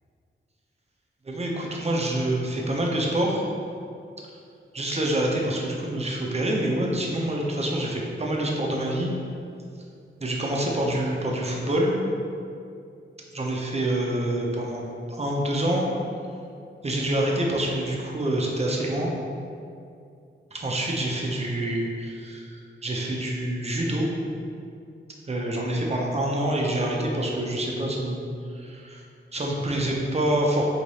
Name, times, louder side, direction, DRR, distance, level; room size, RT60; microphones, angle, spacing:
voice 1, 1.2-3.4 4.7-9.1 10.2-11.9 13.3-15.9 16.8-19.1 20.5-24.1 25.3-28.2 28.5-29.0 29.3-30.7, right 1 dB, 30° right, -1 dB, 0.6 m, -26 dB
3.1 x 2.9 x 4.0 m, 2.5 s
wide cardioid pair, 90°, 21 cm